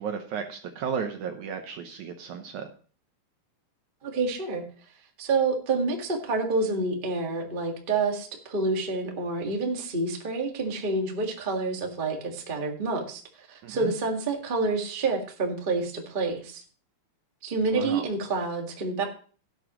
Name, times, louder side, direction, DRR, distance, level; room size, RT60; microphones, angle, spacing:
voice 1, 0.0-2.7 13.6-13.9 17.7-18.1, right 7 dB, 70° right, 5 dB, 1.9 m, -34 dB
voice 2, 4.0-4.6 5.2-16.6 17.4-19.0, right 3 dB, 45° right, 2 dB, 0.6 m, -28 dB
17.0 x 8.1 x 3.0 m, 0.40 s
omnidirectional pair, 4.4 m